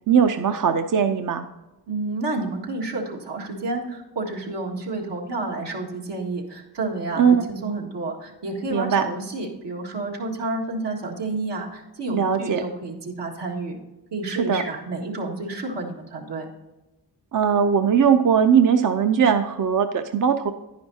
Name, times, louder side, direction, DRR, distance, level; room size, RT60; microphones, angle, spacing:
voice 1, 0.1-1.5 7.2-7.4 8.7-9.0 12.1-12.6 14.3-14.6 17.3-20.5, right 7 dB, 50° right, 7 dB, 0.6 m, -19 dB
voice 2, 1.9-13.8 14.1-16.5, right 2 dB, 80° right, -2 dB, 2.0 m, -30 dB
10.5 x 10.5 x 2.8 m, 1.0 s
cardioid pair, 65°, 42 cm